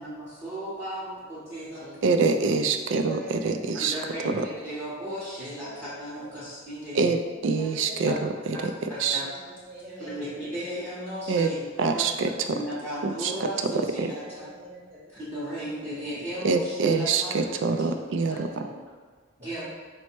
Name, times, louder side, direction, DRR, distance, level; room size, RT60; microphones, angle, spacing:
voice 1, 0.0-1.8 3.7-7.1 8.5-8.6 8.9-9.3 10.0-12.1 12.5-14.5 15.1-17.3 17.8-17.9 18.3-18.5 19.4-19.6, equal, 15° right, -10 dB, 0.8 m, -35 dB
voice 2, 1.5-1.9 2.9-3.6 3.9-4.0 5.6-5.7 6.3-6.4 7.3-8.3 9.0-10.3 12.1-12.2 13.5-13.6 14.2-15.0 17.9-18.7 19.4-19.6, right 1 dB, 35° right, -5 dB, 1.0 m, -44 dB
voice 3, 2.0-4.0 4.2-4.5 6.9-8.7 9.0-9.2 11.3-11.5 11.8-12.6 13.0-13.7 14.0-14.1 16.4-18.7, right 4 dB, 70° right, 7 dB, 0.3 m, -25 dB
4.3 x 2.1 x 4.3 m, 1.5 s
head